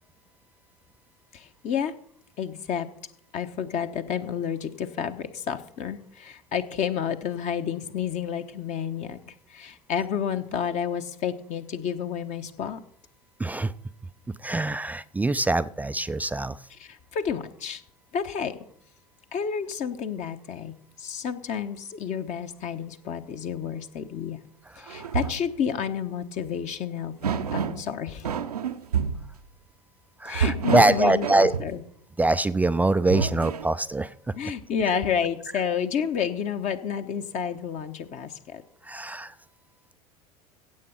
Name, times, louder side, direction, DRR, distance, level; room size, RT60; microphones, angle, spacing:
voice 1, 1.3-1.9 2.4-2.9 3.3-12.8 16.8-17.8 18.1-18.6 19.3-24.4 24.8-28.3 30.2-31.8 34.4-38.6, left 7 dB, 35° left, 8 dB, 1.0 m, -30 dB
voice 2, 13.4-13.7 14.3-16.6 24.8-25.1 30.2-31.5 32.2-34.1 38.8-39.3, right 2 dB, 10° right, 14 dB, 0.4 m, -24 dB
sound 1, 24.9-25.5 26.4-26.6 27.2-27.9 28.2-29.3 30.3-31.8 32.9-33.7, right 6 dB, 75° right, 0.7 m, -28 dB
16.5 x 7.7 x 5.6 m, 0.62 s
figure-of-eight pair, 75°, 20 cm